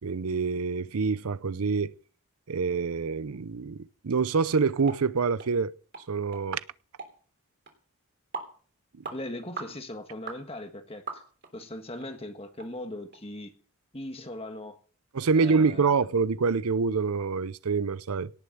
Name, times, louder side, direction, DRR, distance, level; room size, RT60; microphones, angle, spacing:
voice 1, 0.0-1.9 2.5-5.7 6.1-6.6 15.1-18.3, right 5 dB, 85° right, 0.6 m, -26 dB
sound 1, 4.9-5.0 5.4-5.5 5.9-6.1 6.3-6.4 7.0-7.1 7.7-7.8 8.3-8.5 9.0-9.2 9.6-9.7 10.3-10.4 11.1-11.5 12.0-12.1 12.6-12.7 13.1-13.2, right 4 dB, 50° right, 3.5 m, -39 dB
voice 2, 9.1-11.1 11.5-13.5 13.9-14.8 15.4-16.0, left 1 dB, 25° left, 1.5 m, -39 dB
18.0 x 6.8 x 7.9 m
head